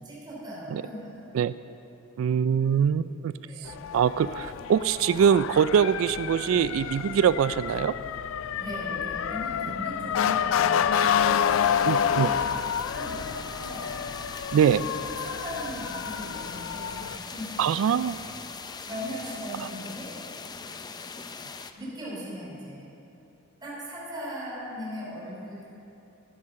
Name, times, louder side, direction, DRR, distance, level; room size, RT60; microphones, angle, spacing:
voice 1, 0.0-1.3 3.4-3.8 8.5-11.4 11.7-14.0 14.5-17.6 18.0-18.2 18.8-20.1 21.7-22.9 23.6-25.7, equal, 20° right, -7 dB, 3.5 m, -39 dB
voice 2, 2.2-3.3 3.9-7.9 11.9-12.3 14.5-14.8 17.6-18.2, right 8 dB, 85° right, 15 dB, 0.3 m, -23 dB
Motor vehicle (road) / Siren, 3.7-17.2, left 8 dB, 85° left, 0.4 m, -29 dB
sound 1, 4.7-20.0, right 1 dB, 40° right, 2.8 m, -55 dB
sound 2, 10.9-21.7, left 5 dB, 20° left, 0.4 m, -41 dB
12.5 x 8.6 x 6.5 m, 2.9 s
head